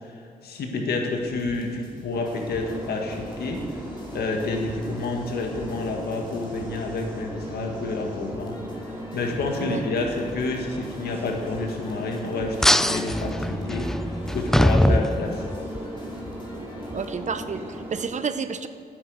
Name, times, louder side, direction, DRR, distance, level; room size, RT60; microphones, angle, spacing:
voice 1, 0.4-3.7 4.1-8.6 9.1-15.4, left 3 dB, 80° left, 2 dB, 1.8 m, -29 dB
sound 1, 1.2-17.2, left 1 dB, 30° left, 2.9 m, -46 dB
sound 2, 2.1-18.1, equal, 15° right, 2.6 m, -37 dB
sound 3, 12.6-15.8, left 1 dB, 5° left, 0.3 m, -22 dB
voice 2, 16.9-18.7, right 6 dB, 50° right, 11 dB, 0.7 m, -30 dB
9.6 x 8.3 x 8.2 m, 2.5 s
cardioid pair, 70°, 16 cm